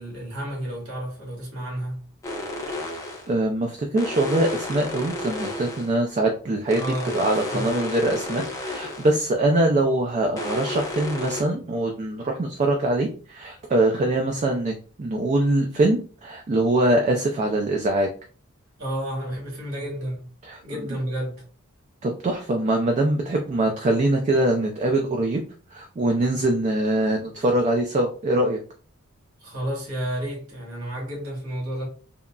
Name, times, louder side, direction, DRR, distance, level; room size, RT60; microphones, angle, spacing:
voice 1, 0.0-2.0 6.7-7.2 7.5-7.7 18.8-20.3 20.6-21.5 29.4-31.9, right 1 dB, 75° right, 1.4 m, -31 dB
sound 1, 2.2-3.3 4.0-6.0 6.7-9.2 10.4-11.4, left 1 dB, 15° left, 0.6 m, -32 dB
voice 2, 3.3-6.8 7.1-18.1 20.4-20.6 22.0-25.4 25.7-28.6, right 1 dB, 35° right, 0.3 m, -23 dB
3.6 x 2.0 x 2.2 m
head